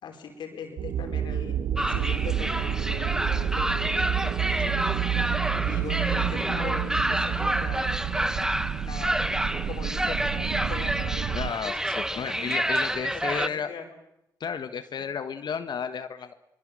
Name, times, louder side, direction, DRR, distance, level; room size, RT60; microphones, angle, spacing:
voice 1, 0.0-4.8 5.6-7.9 8.8-9.2 9.7-12.5 12.9-13.9 15.0-15.1, left 6 dB, 85° left, 3 dB, 5.0 m, -41 dB
sound 1, 0.8-11.5, right 9 dB, 90° right, 1.4 m, -29 dB
sound 2, 1.8-13.5, right 1 dB, 5° right, 0.9 m, -29 dB
voice 2, 11.3-13.7 14.4-16.3, left 7 dB, 70° left, 9 dB, 1.5 m, -33 dB
23.5 x 22.5 x 7.7 m, 0.81 s
cardioid pair, 70°, 8 cm